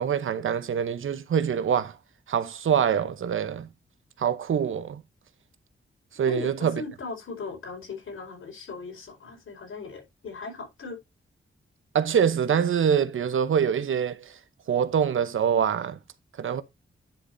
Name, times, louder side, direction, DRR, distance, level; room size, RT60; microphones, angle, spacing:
voice 1, 0.0-2.0 2.3-3.7 4.2-5.0 6.1-6.8 11.9-14.4 14.7-16.0 16.4-16.6, right 8 dB, 75° right, 0.9 m, -25 dB
voice 2, 6.3-11.0, left 4 dB, 80° left, 5.1 m, -38 dB
9.9 x 6.8 x 2.7 m
wide cardioid pair, 165°, 21 cm